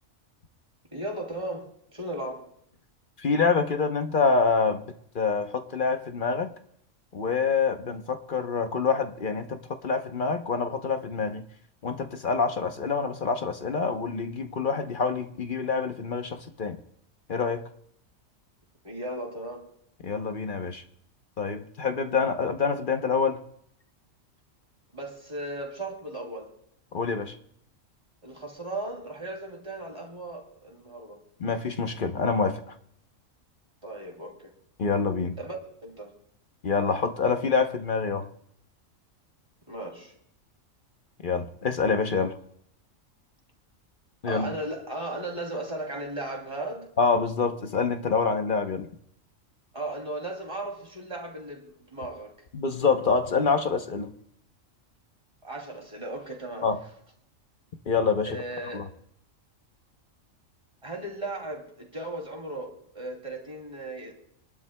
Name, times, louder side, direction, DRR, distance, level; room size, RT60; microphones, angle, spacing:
voice 1, 0.9-2.5 18.8-19.7 24.9-26.5 28.2-31.2 33.8-34.5 35.4-35.6 35.8-36.1 39.7-40.1 44.2-46.9 49.7-52.3 55.4-56.7 58.3-58.8 60.8-64.1, right 1 dB, 25° right, 1 dB, 2.7 m, -36 dB
voice 2, 3.2-4.8 5.1-6.5 7.1-9.6 9.8-11.4 11.8-16.8 17.3-17.6 20.0-20.8 21.4-23.4 26.9-27.3 31.4-32.6 34.8-35.3 36.6-38.2 41.2-42.4 44.2-44.5 47.0-48.9 52.5-54.1 56.6-56.8 57.9-58.3 58.7-58.8, left 5 dB, 45° left, 7 dB, 0.9 m, -26 dB
26.5 x 12.0 x 2.2 m, 0.69 s
omnidirectional pair, 1.4 m